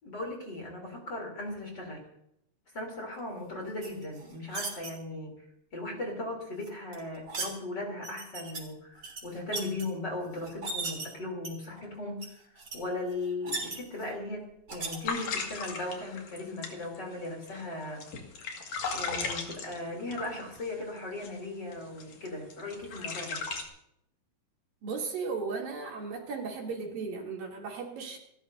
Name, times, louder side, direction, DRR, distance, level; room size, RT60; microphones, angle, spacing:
voice 1, 0.0-2.0 2.7-5.4 5.7-18.0 18.9-23.4, left 2 dB, 30° left, 0 dB, 3.6 m, -38 dB
sound 1, 3.8-4.9 6.6-7.5 8.0-8.6 9.0-9.8 10.4-11.1 11.4-11.8 12.2-12.3 12.6-12.8 13.1-14.1 14.7-15.0, right 3 dB, 35° right, 3.8 m, -37 dB
sound 2, 15.0-20.7 21.2-21.4 21.7-23.7, left 4 dB, 55° left, 3.1 m, -36 dB
voice 2, 24.8-28.2, right 5 dB, 70° right, -1 dB, 4.5 m, -36 dB
28.0 x 13.5 x 2.7 m, 0.76 s
omnidirectional pair, 4.2 m